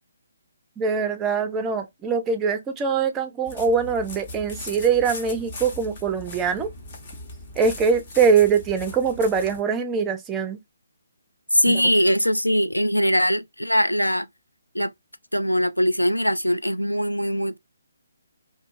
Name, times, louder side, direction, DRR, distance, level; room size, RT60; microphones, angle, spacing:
voice 1, 0.8-6.7 7.6-10.6 11.7-11.8, right 5 dB, 15° right, 0.4 m, -23 dB
sound 1, 3.5-9.6, left 2 dB, 35° left, 0.9 m, -39 dB
voice 2, 11.5-14.3 14.7-14.9 15.3-17.6, equal, 90° left, 0.3 m, -21 dB
2.6 x 2.4 x 2.5 m
figure-of-eight pair, 140°, 0 cm